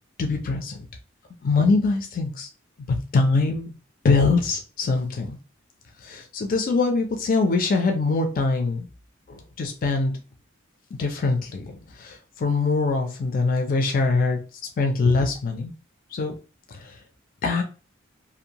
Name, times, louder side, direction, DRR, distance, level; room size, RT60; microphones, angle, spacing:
voice 1, 0.2-0.9 1.4-2.5 3.1-3.7 4.0-5.4 6.0-8.9 9.3-10.1 11.0-14.4 14.8-15.7 16.1-16.3 16.8-16.9 17.4-17.6, left 3 dB, 45° left, 4 dB, 0.4 m, -23 dB
2.6 x 2.0 x 2.8 m, 0.34 s
head